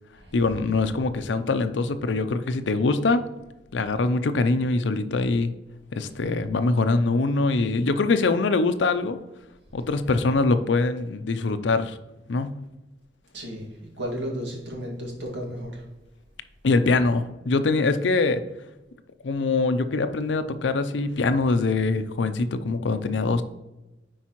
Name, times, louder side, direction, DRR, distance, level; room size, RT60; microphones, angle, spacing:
voice 1, 0.3-3.2 3.7-5.5 5.9-9.2 9.7-12.0 12.3-12.6 16.6-18.4 19.2-23.4, left 3 dB, 85° left, 11 dB, 0.5 m, -23 dB
voice 2, 13.3-15.9, equal, 80° right, -1 dB, 1.9 m, -34 dB
10.0 x 4.6 x 3.0 m, 1.0 s
head